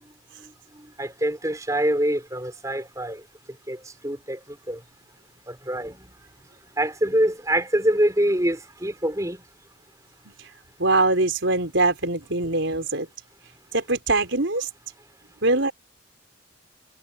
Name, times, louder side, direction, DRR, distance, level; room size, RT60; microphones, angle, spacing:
voice 1, 0.8-3.2 3.7-4.8 5.5-6.1 6.8-9.4, right 1 dB, 15° right, 3.8 m, -25 dB
voice 2, 10.8-13.1 13.7-14.7 15.4-15.7, right 2 dB, 75° right, 4.0 m, -23 dB
head